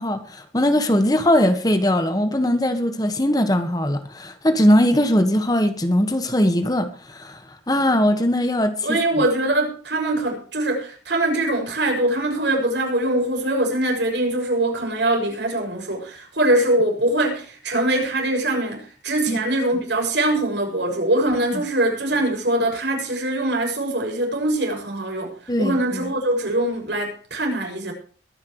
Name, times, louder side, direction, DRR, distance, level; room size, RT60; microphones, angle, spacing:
voice 1, 0.0-7.4 7.7-9.0 19.3-19.4 25.5-26.1, left 1 dB, 20° left, 1.5 m, -20 dB
voice 2, 8.8-25.3 25.6-27.9, right 1 dB, 75° right, 6.6 m, -22 dB
22.5 x 10.5 x 3.2 m
head